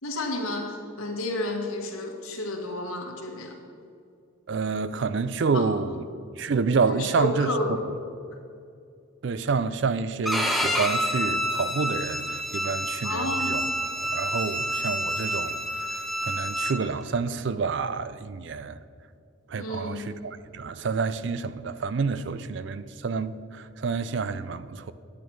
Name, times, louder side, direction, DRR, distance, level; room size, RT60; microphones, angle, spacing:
voice 1, 0.0-3.5 5.5-5.7 6.9-7.9 13.0-13.6 19.6-20.1, left 1 dB, 80° left, 1.6 m, -31 dB
voice 2, 4.5-6.0 6.4-7.5 9.2-13.6 14.0-15.8 16.2-18.8 19.5-24.9, right 4 dB, 55° right, 0.4 m, -28 dB
Bowed string instrument, 10.2-16.8, equal, ahead, 0.7 m, -28 dB
10.0 x 8.9 x 4.6 m
head